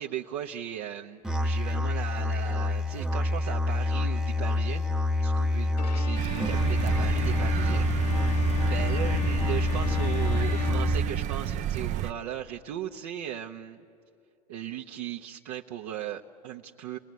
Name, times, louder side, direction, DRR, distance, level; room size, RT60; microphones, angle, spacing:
voice 1, 0.0-4.9 5.2-13.8 14.5-17.0, right 11 dB, 60° right, 0 dB, 1.1 m, -37 dB
Musical instrument, 1.2-11.2, left 2 dB, 5° right, 0.8 m, -27 dB
Bowed string instrument, 5.8-11.7, left 12 dB, 80° left, 0.6 m, -39 dB
sound 1, 6.1-12.1, right 12 dB, 35° right, 0.7 m, -31 dB
30.0 x 20.0 x 9.5 m, 2.5 s
hypercardioid pair, 95°, 21 cm